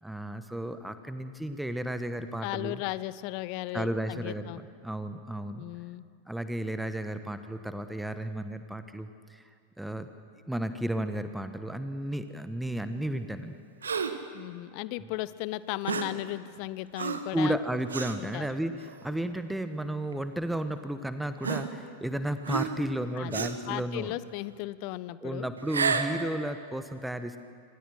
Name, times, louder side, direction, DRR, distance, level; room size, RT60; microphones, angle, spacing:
voice 1, 0.0-2.8 3.7-4.5 4.8-5.6 6.3-9.4 9.8-10.1 10.5-13.6 17.3-24.1 25.2-27.4, right 1 dB, 5° right, 10 dB, 1.2 m, -33 dB
voice 2, 2.4-4.6 5.6-6.1 14.3-17.6 18.2-18.5 23.2-25.5, left 17 dB, 45° left, 17 dB, 0.8 m, -36 dB
Gasp, 13.8-14.3 15.8-16.2 17.0-17.3 17.9-18.2 18.9-19.0 20.1-20.2 21.4-22.1 22.4-22.9 23.3-23.7 25.6-26.2, right 5 dB, 70° right, 1.6 m, -31 dB
26.5 x 26.0 x 6.5 m, 2.2 s
figure-of-eight pair, 90°, 0 cm